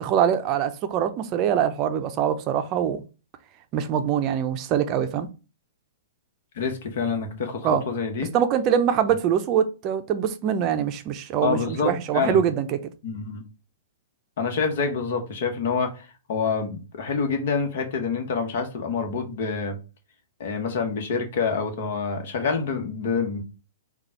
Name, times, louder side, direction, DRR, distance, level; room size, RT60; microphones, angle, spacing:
voice 1, 0.0-3.0 3.7-5.3 7.6-7.8 8.3-12.7, right 8 dB, 35° right, 0.5 m, -23 dB
voice 2, 6.5-8.3 11.4-12.4 13.0-13.4 14.4-19.8 20.4-23.4, left 5 dB, 60° left, 1.1 m, -27 dB
4.0 x 2.3 x 4.4 m
hypercardioid pair, 130°, 0 cm